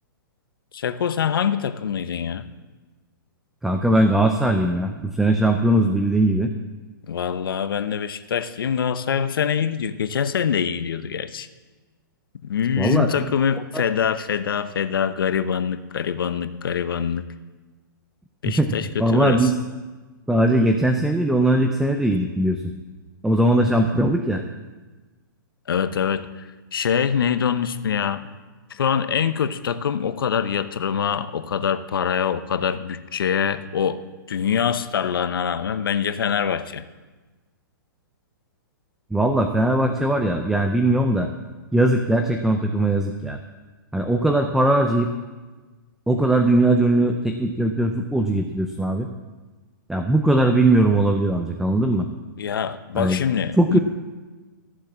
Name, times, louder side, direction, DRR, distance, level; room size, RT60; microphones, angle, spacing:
voice 1, 0.7-2.5 7.1-11.5 12.4-17.3 18.4-19.5 25.7-28.3 28.7-34.0 34.3-36.8 52.4-53.8, left 7 dB, 80° left, 12 dB, 0.8 m, -24 dB
voice 2, 3.6-6.5 12.8-13.1 13.7-13.8 18.4-19.6 20.3-22.6 23.2-24.4 39.1-41.3 41.7-43.4 43.9-45.1 46.1-49.1 49.9-52.1 52.9-53.2 53.6-53.8, right 1 dB, 5° right, 5 dB, 0.5 m, -20 dB
14.5 x 7.4 x 7.3 m, 1.3 s
hypercardioid pair, 145°, 12 cm